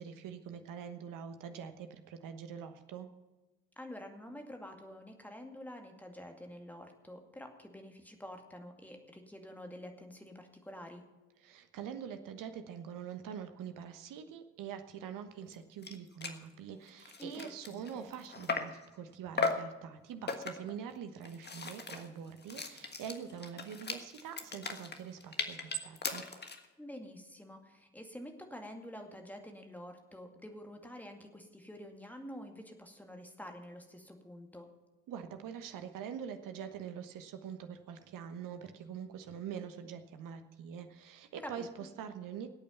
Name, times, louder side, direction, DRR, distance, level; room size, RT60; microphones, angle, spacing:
voice 1, 0.0-3.1 11.4-26.2 35.1-42.5, right 8 dB, 55° right, 8 dB, 1.2 m, -44 dB
voice 2, 3.8-11.1 17.2-18.1 26.8-34.7 41.4-41.7, equal, 5° left, 4 dB, 2.2 m, -48 dB
sound 1, 15.5-15.6 15.8-16.0 16.2-16.4 16.9-18.8 19.4-19.7 20.3-20.8 21.2-26.7, left 4 dB, 25° left, 1.5 m, -38 dB
19.0 x 8.6 x 5.7 m, 1.1 s
figure-of-eight pair, 40°, 39 cm